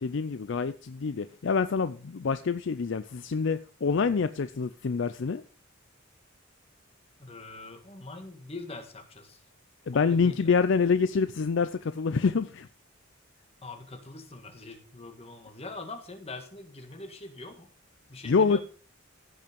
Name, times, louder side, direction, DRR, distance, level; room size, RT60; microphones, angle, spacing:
voice 1, 0.0-5.4 9.9-12.7 18.3-18.6, left 5 dB, 60° left, 0.5 m, -26 dB
voice 2, 7.2-9.4 9.9-10.5 13.6-17.7 18.1-18.6, left 2 dB, 30° left, 1.9 m, -43 dB
15.5 x 5.6 x 5.2 m
head